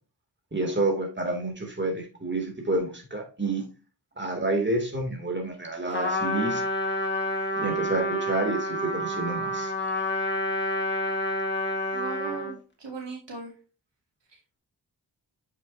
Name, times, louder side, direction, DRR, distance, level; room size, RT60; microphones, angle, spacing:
voice 1, 0.5-3.6 4.2-6.6 7.6-9.7, right 2 dB, 25° right, 1 dB, 2.8 m, -29 dB
Trumpet, 5.9-12.5, left 1 dB, 25° left, 2.4 m, -28 dB
voice 2, 11.9-13.5 14.3-14.6, right 3 dB, 85° right, -1 dB, 2.4 m, -39 dB
7.7 x 6.8 x 2.7 m, 0.34 s
cardioid pair, 50°, 42 cm